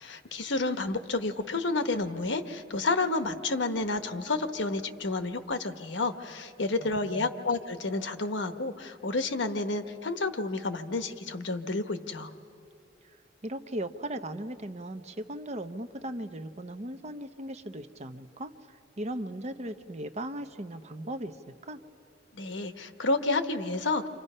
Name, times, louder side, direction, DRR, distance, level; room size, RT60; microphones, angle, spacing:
voice 1, 0.0-12.3 22.3-24.1, left 3 dB, 80° left, 9 dB, 1.1 m, -30 dB
voice 2, 6.8-7.5 13.4-21.8, right 1 dB, 40° right, 9 dB, 0.9 m, -38 dB
29.5 x 26.0 x 5.5 m, 2.4 s
head